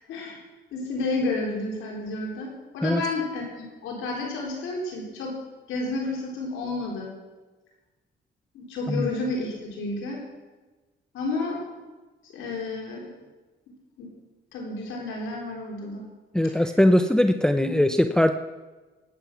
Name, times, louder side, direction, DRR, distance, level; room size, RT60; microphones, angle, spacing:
voice 1, 0.1-0.4 0.7-5.3 5.7-7.1 8.5-10.2 11.1-11.6 12.3-13.1 14.0-14.1 14.5-16.0 17.6-17.9, left 2 dB, 85° left, -2 dB, 3.9 m, -31 dB
voice 2, 16.3-18.3, left 1 dB, 5° left, 8 dB, 0.7 m, -20 dB
19.0 x 8.9 x 6.0 m, 1.2 s
cardioid pair, 90°, 20 cm